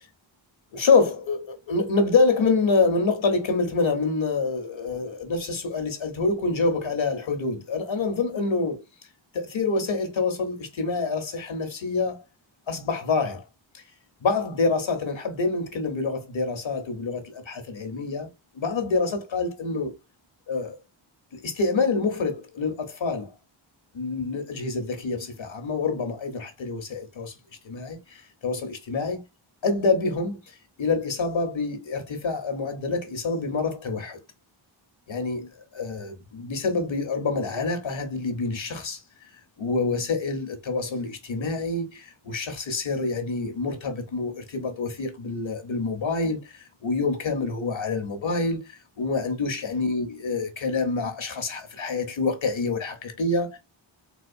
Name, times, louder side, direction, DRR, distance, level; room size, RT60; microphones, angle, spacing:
voice 1, 0.7-8.8 9.3-12.2 12.7-13.4 13.7-13.8 14.2-18.3 18.5-19.9 20.5-20.8 21.3-23.3 23.9-27.3 27.6-29.2 29.6-34.2 35.1-39.0 39.6-53.6, left 3 dB, 70° left, 1.0 m, -26 dB
4.0 x 2.5 x 2.5 m
wide cardioid pair, 90°, 47 cm